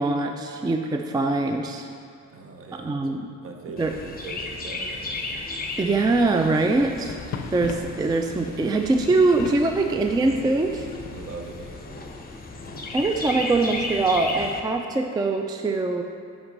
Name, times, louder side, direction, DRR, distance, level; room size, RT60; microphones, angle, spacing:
voice 1, 0.0-1.9 2.8-3.2 3.8-3.9 5.8-7.2 7.5-10.9 12.9-16.0, right 3 dB, 15° right, 4 dB, 0.3 m, -23 dB
voice 2, 2.3-3.0 3.4-5.3 11.1-12.0, right 4 dB, 45° right, 3 dB, 0.9 m, -41 dB
Chirp tweet, 3.8-14.6, left 3 dB, 30° left, 0.9 m, -35 dB
sound 1, 6.8-11.8, left 6 dB, 55° left, 0.5 m, -39 dB
5.7 x 5.4 x 5.3 m, 2.3 s
cardioid pair, 90°, 30 cm